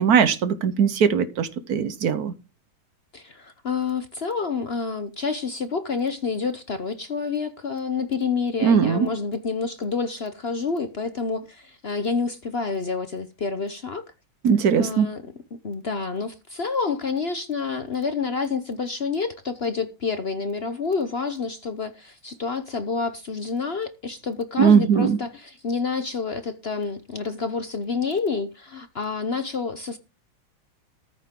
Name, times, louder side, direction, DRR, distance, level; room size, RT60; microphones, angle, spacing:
voice 1, 0.0-2.3 8.6-9.1 14.4-15.1 24.6-25.2, right 7 dB, 55° right, 1.3 m, -19 dB
voice 2, 3.1-14.0 14.8-15.2 15.5-30.0, left 4 dB, 50° left, 0.7 m, -28 dB
14.0 x 10.0 x 3.7 m
omnidirectional pair, 2.2 m